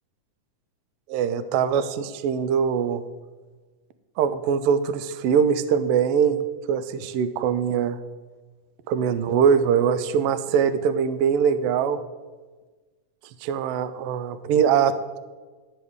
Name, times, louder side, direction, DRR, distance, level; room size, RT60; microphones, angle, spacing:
voice 1, 1.1-3.0 4.2-6.4 6.7-8.0 8.9-12.0 13.4-14.9, right 7 dB, 85° right, 12 dB, 1.3 m, -22 dB
12.0 x 7.8 x 3.6 m, 1.3 s
omnidirectional pair, 3.3 m